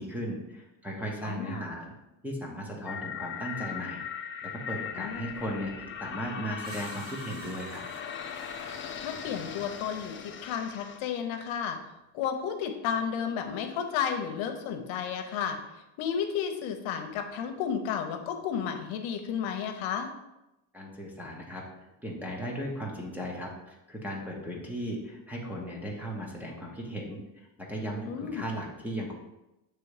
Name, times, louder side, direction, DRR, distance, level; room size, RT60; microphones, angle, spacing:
voice 1, 0.0-1.9 2.2-7.8 20.7-21.6 22.0-27.2 27.6-29.1, equal, 5° right, -2 dB, 0.9 m, -36 dB
voice 2, 1.2-1.6 5.0-5.3 9.0-11.8 12.1-15.6 16.0-20.1 28.0-28.5, left 7 dB, 75° left, 6 dB, 0.9 m, -32 dB
sound 1, 2.9-11.0, left 7 dB, 30° left, 0.3 m, -39 dB
Screech, 6.6-10.6, right 3 dB, 70° right, 1.2 m, -50 dB
6.8 x 3.2 x 4.8 m, 0.95 s
cardioid pair, 140°, 48 cm